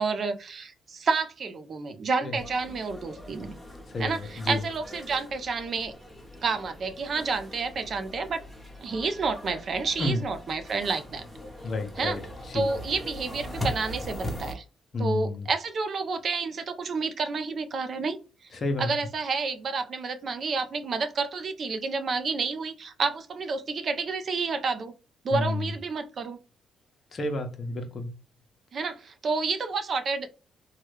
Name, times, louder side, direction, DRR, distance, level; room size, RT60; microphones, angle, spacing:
voice 1, 0.0-3.5 4.0-5.9 6.4-8.4 8.8-11.2 12.0-12.2 12.5-14.6 15.0-18.2 18.8-24.9 25.2-26.4 28.7-30.3, right 4 dB, 50° right, 0.5 m, -30 dB
sound 1, 2.4-14.5, left 1 dB, 5° left, 1.0 m, -40 dB
voice 2, 3.9-4.6 10.0-10.2 11.6-12.2 12.5-12.7 14.9-15.5 18.6-18.9 25.3-25.7 27.1-28.1, left 2 dB, 45° left, 0.8 m, -30 dB
3.1 x 2.3 x 3.2 m
cardioid pair, 90°, 0 cm